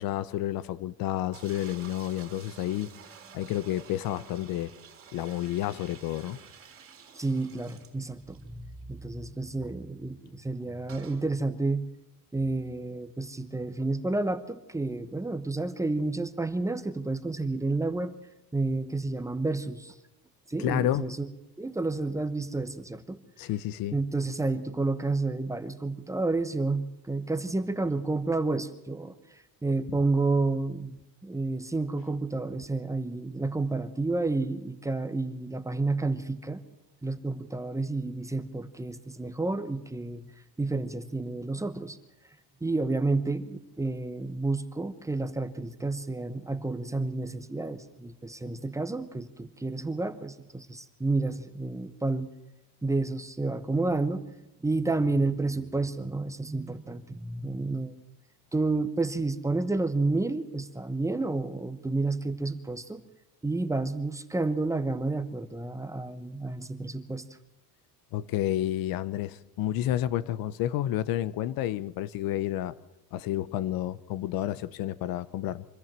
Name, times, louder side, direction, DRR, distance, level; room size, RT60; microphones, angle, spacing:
voice 1, 0.0-2.9 3.3-4.7 5.1-6.4 20.6-21.0 23.4-24.0 68.1-72.7 73.1-75.6, left 13 dB, 65° left, 0.8 m, -30 dB
sound 1, 1.3-8.5 8.8-8.9 9.1-9.2 10.9-11.2, right 7 dB, 35° right, 3.4 m, -50 dB
voice 2, 7.2-11.8 12.3-18.1 18.5-19.9 20.5-21.3 21.6-23.2 23.9-31.0 31.2-36.6 37.0-40.2 40.6-42.0 42.6-52.3 52.8-54.3 54.6-57.9 58.5-63.0 63.4-67.2, right 3 dB, 10° right, 0.8 m, -30 dB
24.5 x 14.0 x 7.4 m
cardioid pair, 150°, 37 cm